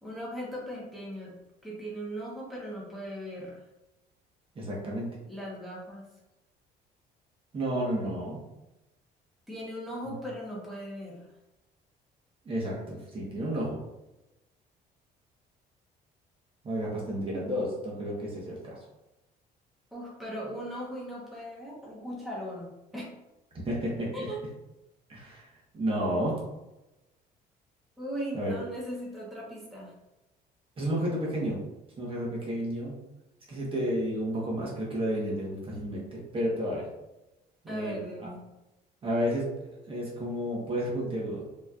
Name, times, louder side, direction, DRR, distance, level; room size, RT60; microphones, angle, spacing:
voice 1, 0.0-1.4 1.6-3.6 5.2-6.0 9.5-11.3 16.8-17.0 19.9-23.0 24.1-24.4 28.0-29.9 37.7-38.4, equal, ahead, -6 dB, 1.0 m, -38 dB
voice 2, 4.5-5.1 7.5-8.4 10.1-10.2 12.4-13.8 16.6-18.8 23.6-24.1 25.1-25.5 25.7-26.4 28.3-28.5 30.8-31.6 32.0-32.9 33.5-36.9 37.6-38.0 39.0-41.4, equal, 30° right, -4 dB, 1.2 m, -31 dB
4.1 x 3.0 x 2.4 m, 0.97 s
cardioid pair, 110°, 17 cm